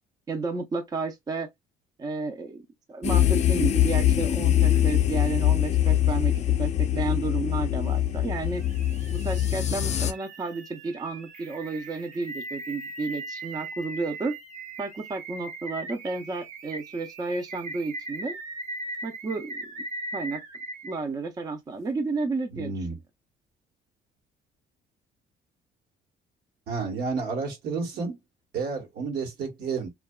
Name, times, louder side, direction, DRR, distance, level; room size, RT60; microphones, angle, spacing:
voice 1, 0.3-1.5 2.0-8.6 9.1-14.3 14.8-18.4 19.0-19.7 20.1-20.4 20.8-22.7, right 3 dB, 25° right, 0.4 m, -32 dB
sound 1, 3.0-10.1, left 11 dB, 45° left, 0.4 m, -23 dB
sound 2, 4.7-4.8 8.1-21.0, right 2 dB, 45° right, 0.8 m, -39 dB
voice 2, 22.5-23.0 26.7-28.2 28.5-29.9, right 4 dB, 70° right, 1.1 m, -31 dB
2.7 x 2.2 x 2.2 m
cardioid pair, 110°, 17 cm